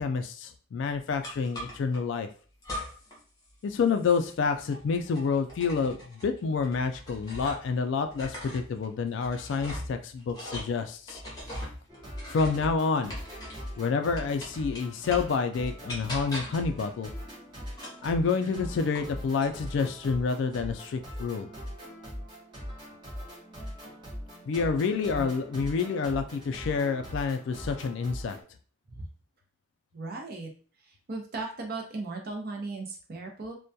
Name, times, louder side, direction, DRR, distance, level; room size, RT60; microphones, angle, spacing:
voice 1, 0.0-2.3 3.6-11.2 12.3-13.1 13.8-17.1 18.0-21.5 24.5-28.4, left 5 dB, 65° left, 8 dB, 0.3 m, -28 dB
sound 1, 1.2-2.0 2.6-3.2 3.5-7.8 8.1-13.8 14.2-15.4 15.9-16.7 17.7-19.1 19.4-20.0, equal, 20° left, 0.7 m, -41 dB
sound 2, 11.9-28.4, equal, 25° right, 0.8 m, -41 dB
voice 2, 29.9-30.5 30.8-33.6, right 3 dB, 50° right, 2 dB, 0.5 m, -37 dB
2.2 x 2.1 x 2.6 m, 0.40 s
head